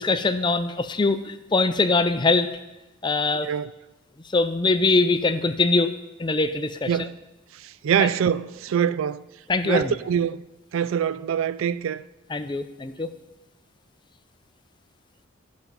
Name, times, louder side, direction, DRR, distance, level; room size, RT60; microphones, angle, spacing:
voice 1, 0.0-2.5 3.0-3.5 4.2-5.9 6.2-7.1 8.0-8.1 9.5-9.9 12.3-13.1, left 3 dB, 20° left, 0.4 m, -22 dB
voice 2, 7.5-9.2 9.6-10.4 10.7-12.0, right 8 dB, 75° right, 0.3 m, -24 dB
13.0 x 5.3 x 5.9 m
head